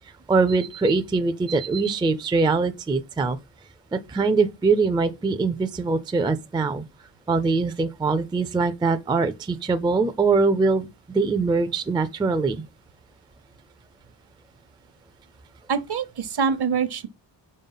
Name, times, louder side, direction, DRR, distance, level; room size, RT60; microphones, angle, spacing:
voice 1, 0.3-3.4 3.9-6.8 7.3-12.6, right 4 dB, 10° right, 0.3 m, -23 dB
voice 2, 15.7-17.1, right 6 dB, 60° right, 0.8 m, -25 dB
5.3 x 4.4 x 5.5 m
wide cardioid pair, 170°, 44 cm